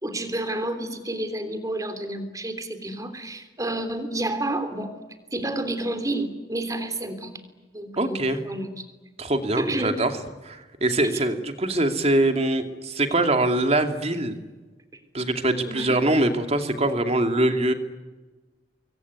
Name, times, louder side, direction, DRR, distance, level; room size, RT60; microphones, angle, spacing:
voice 1, 0.0-5.0 5.3-7.4 7.7-8.9 9.6-10.0 11.1-11.2 14.9-15.0 15.6-16.0, right 1 dB, 20° right, 9 dB, 3.3 m, -30 dB
voice 2, 8.0-8.4 9.2-10.1 10.4-14.4 15.1-17.7, right 1 dB, 35° right, 7 dB, 2.5 m, -23 dB
26.0 x 23.0 x 9.6 m, 1.2 s
head